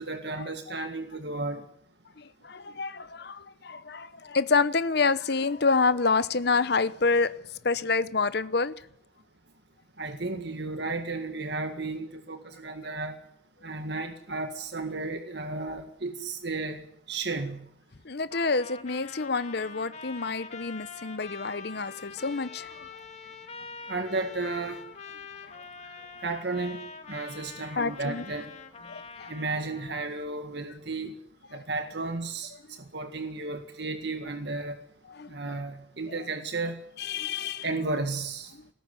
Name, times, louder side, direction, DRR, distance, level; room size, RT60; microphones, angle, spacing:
voice 1, 0.0-1.6 10.0-13.2 13.6-16.8 17.1-17.6 23.9-24.8 26.2-26.8 27.1-28.5 29.3-31.1 31.5-32.5 32.9-34.8 35.3-36.8 37.6-38.5, right 3 dB, 60° right, 1.9 m, -33 dB
voice 2, 2.2-7.4 7.6-8.7 18.0-22.9 25.6-25.7 27.8-28.2 28.9-29.3 35.2-35.3 37.0-37.6, left 4 dB, 55° left, 0.9 m, -27 dB
Trumpet, 18.3-29.9, left 5 dB, 35° left, 2.1 m, -44 dB
20.0 x 18.5 x 9.7 m
head